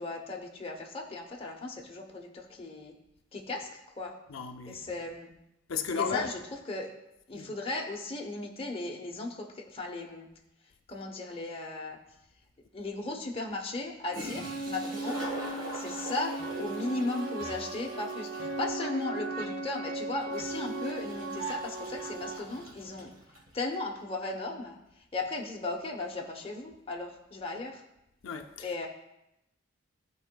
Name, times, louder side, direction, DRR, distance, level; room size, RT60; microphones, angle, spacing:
voice 1, 0.0-2.9 3.3-4.1 4.7-5.3 6.0-6.4 6.7-6.9 7.3-10.3 10.9-12.0 12.7-15.2 15.7-23.1 23.5-24.8 25.1-27.8 28.6-28.9, left 2 dB, 30° left, 0.9 m, -36 dB
voice 2, 4.3-4.8 5.7-6.3 7.3-7.5 28.2-28.9, left 6 dB, 85° left, 0.5 m, -35 dB
Toilet flush, 12.1-12.2 13.8-13.9 14.1-23.5, right 1 dB, 70° right, 1.7 m, -43 dB
sound 1, 14.4-22.4, right 2 dB, 90° right, 1.2 m, -37 dB
14.0 x 4.7 x 2.3 m
head